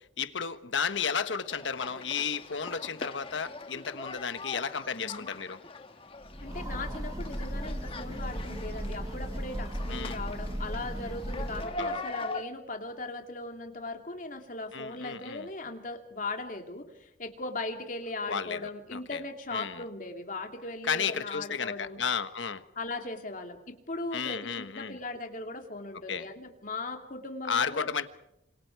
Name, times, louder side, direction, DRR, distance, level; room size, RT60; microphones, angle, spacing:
voice 1, 0.0-5.6 9.9-10.2 11.8-12.0 14.7-15.5 18.3-18.6 18.9-19.2 19.5-19.8 20.8-22.6 24.1-25.0 26.1-26.2 27.5-28.1, left 6 dB, 90° left, 11 dB, 1.3 m, -33 dB
sound 1, 1.5-12.4, left 2 dB, 30° left, 1.5 m, -42 dB
voice 2, 4.9-5.3 6.4-22.0 22.8-27.9, left 2 dB, 45° left, 4 dB, 2.7 m, -38 dB
Train, 6.2-11.9, equal, 20° right, 1.4 m, -36 dB
28.5 x 26.5 x 4.7 m, 0.82 s
head